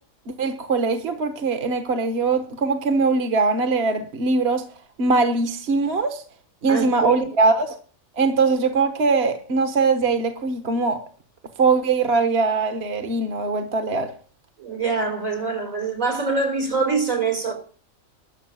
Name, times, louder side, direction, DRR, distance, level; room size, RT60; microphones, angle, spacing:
voice 1, 0.3-4.6 5.0-6.2 6.6-7.8 8.2-11.0 11.6-14.1, right 4 dB, 55° right, 1.3 m, -21 dB
voice 2, 6.7-7.3 14.6-17.5, right 4 dB, 85° right, 4.4 m, -24 dB
12.5 x 6.4 x 8.9 m
omnidirectional pair, 1.4 m